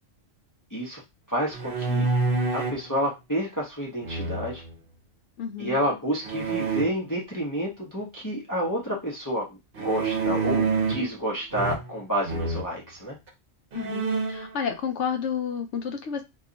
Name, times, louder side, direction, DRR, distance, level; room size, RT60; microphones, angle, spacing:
voice 1, 0.7-1.0 1.3-2.1 2.5-4.6 5.6-13.2, equal, 20° left, -3 dB, 0.6 m, -29 dB
sound 1, 1.5-2.8 4.0-4.7 6.2-6.8 9.8-11.1 11.5-12.0 12.2-12.7 13.3-13.4 13.7-14.5, right 4 dB, 50° right, 0.9 m, -27 dB
voice 2, 5.4-5.8 13.7-16.2, left 7 dB, 70° left, 6 dB, 0.8 m, -30 dB
2.7 x 2.4 x 3.8 m, 0.23 s
omnidirectional pair, 1.3 m